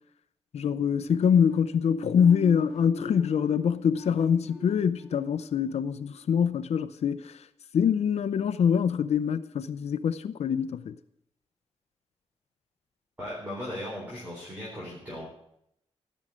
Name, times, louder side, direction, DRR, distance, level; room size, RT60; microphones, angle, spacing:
voice 1, 0.5-7.5 7.7-11.0, left 7 dB, 75° left, 0.6 m, -25 dB
sound 1, 0.9-6.6, equal, ahead, 1.0 m, -42 dB
voice 2, 13.2-15.2, left 1 dB, 15° right, 3.9 m, -37 dB
16.5 x 6.3 x 8.6 m
wide cardioid pair, 175°, 11 cm